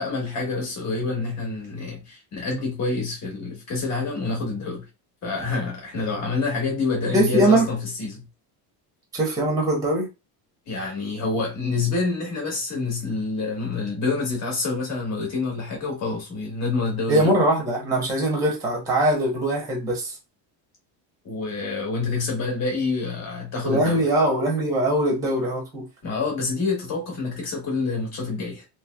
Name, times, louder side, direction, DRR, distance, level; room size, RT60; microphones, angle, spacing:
voice 1, 0.0-4.9 5.2-8.2 10.7-17.3 21.2-24.1 26.0-28.7, left 3 dB, 35° left, 1.4 m, -27 dB
voice 2, 7.1-7.6 9.1-10.1 17.1-20.2 23.6-25.8, right 1 dB, 10° right, 0.9 m, -21 dB
3.2 x 3.2 x 2.3 m
cardioid pair, 175°, 44 cm